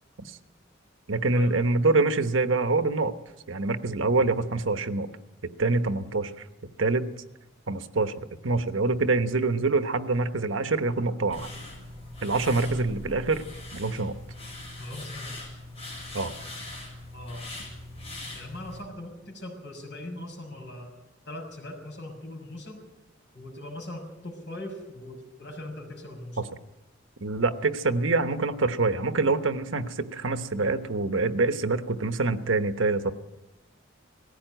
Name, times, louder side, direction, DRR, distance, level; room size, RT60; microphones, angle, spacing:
voice 1, 1.1-3.1 3.5-5.1 5.6-6.3 6.8-7.1 7.7-11.5 12.2-13.4 13.7-14.2 16.1-16.3 27.2-33.1, right 3 dB, 85° right, 10 dB, 1.1 m, -25 dB
sound 1, 11.3-18.8, left 2 dB, 30° left, 6.8 m, -41 dB
voice 2, 14.8-15.6 17.1-17.5 18.3-20.9 21.2-22.8 23.3-26.4, left 1 dB, 60° left, 1 dB, 6.3 m, -40 dB
18.5 x 15.5 x 9.1 m, 0.99 s
head